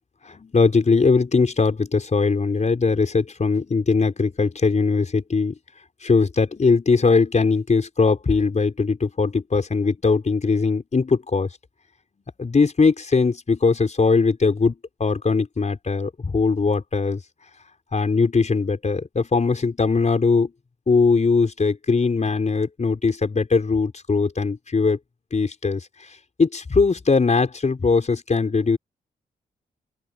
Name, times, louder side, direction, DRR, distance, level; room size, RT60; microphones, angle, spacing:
voice 1, 0.2-5.6 6.0-11.5 12.4-17.2 17.9-20.5 20.9-25.0 25.3-26.1 26.4-28.8, left 4 dB, 40° left, 5.4 m, -20 dB
open air
supercardioid pair, 50°, 17 cm